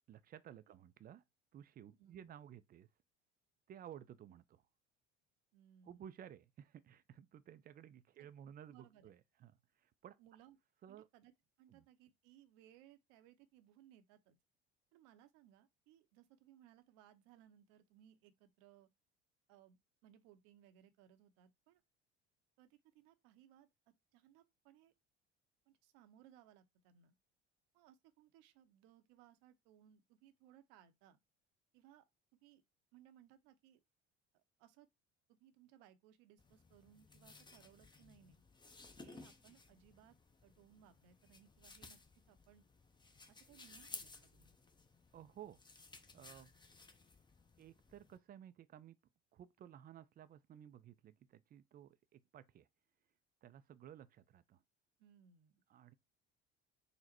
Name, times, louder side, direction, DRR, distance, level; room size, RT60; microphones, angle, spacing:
voice 1, 0.1-1.2 1.5-2.9 3.7-4.6 5.9-10.2 10.8-11.1 11.7-11.9 45.1-45.6 46.1-46.5 47.6-49.0 49.3-52.7 53.4-54.6 55.7-55.9, right 10 dB, 30° right, 0.4 m, -56 dB
voice 2, 2.0-2.4 5.5-6.1 8.2-8.3 8.7-9.1 10.2-10.6 10.9-11.3 11.6-14.4 14.9-18.9 19.5-21.8 22.6-23.7 24.1-24.9 25.7-27.2 27.7-31.2 31.7-32.0 32.4-32.6 32.9-33.8 34.3-34.9 35.3-38.4 39.0-40.2 40.4-42.0 42.3-42.7 43.3-44.6 55.0-55.6, right 10 dB, 60° right, 0.7 m, -65 dB
sound 1, 36.4-48.2, left 3 dB, 15° left, 0.7 m, -58 dB
3.9 x 2.1 x 4.2 m
hypercardioid pair, 65°, 32 cm